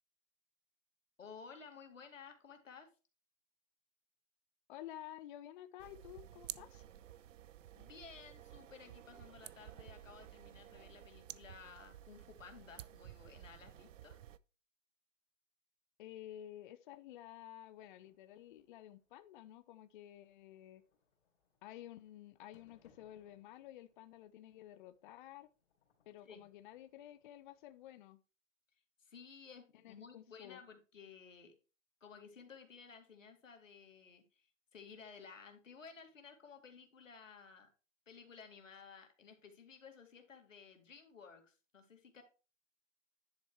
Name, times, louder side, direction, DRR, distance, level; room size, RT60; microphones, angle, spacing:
voice 1, 1.2-2.9 7.7-14.2 26.2-26.5 29.0-31.5 32.0-37.7 38.1-42.2, left 5 dB, 90° left, 5 dB, 2.1 m, -56 dB
voice 2, 4.7-6.8 16.0-20.8 21.6-25.5 26.1-28.2 29.8-30.6, left 12 dB, 40° left, 12 dB, 0.6 m, -52 dB
sound 1, 5.8-14.4, right 11 dB, 75° right, 0.6 m, -53 dB
sound 2, 17.7-27.9, left 6 dB, 60° left, 3.6 m, -76 dB
10.5 x 4.4 x 4.5 m, 0.33 s
hypercardioid pair, 135°, 38 cm